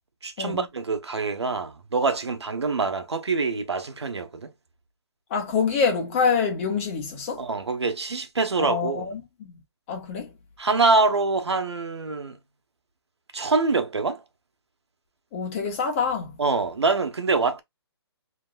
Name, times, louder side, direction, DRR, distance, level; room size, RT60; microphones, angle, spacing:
voice 1, 0.2-4.5 7.4-9.1 10.6-12.4 13.3-14.2 16.4-17.6, right 4 dB, 75° right, 1.3 m, -25 dB
voice 2, 5.3-7.5 8.6-9.5 9.9-10.3 15.3-16.3, left 5 dB, 30° left, 1.6 m, -26 dB
5.7 x 3.3 x 2.5 m
figure-of-eight pair, 140°, 14 cm